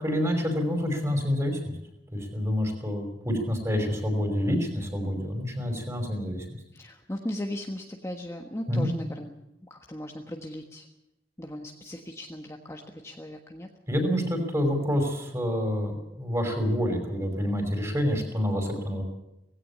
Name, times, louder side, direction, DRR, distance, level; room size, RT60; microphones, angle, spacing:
voice 1, 0.0-1.6 2.1-6.5 8.7-8.9 13.9-19.0, equal, 15° right, 5 dB, 5.2 m, -27 dB
voice 2, 6.7-9.3 9.6-10.9 11.4-13.7, left 1 dB, 15° left, 2 dB, 1.4 m, -37 dB
18.5 x 16.5 x 8.5 m, 0.90 s
head